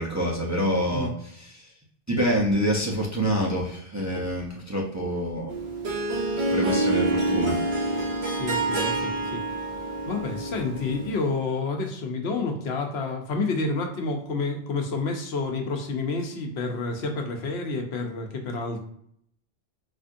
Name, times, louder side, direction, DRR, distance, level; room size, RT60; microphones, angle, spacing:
voice 1, 0.0-1.7 2.1-5.5 6.5-7.6, equal, 25° right, -2 dB, 0.5 m, -26 dB
Harp, 5.5-11.3, right 2 dB, 80° right, 1.0 m, -27 dB
voice 2, 8.2-9.6 10.1-18.8, left 3 dB, 80° left, 3 dB, 1.0 m, -29 dB
4.2 x 2.4 x 2.6 m, 0.69 s
omnidirectional pair, 1.1 m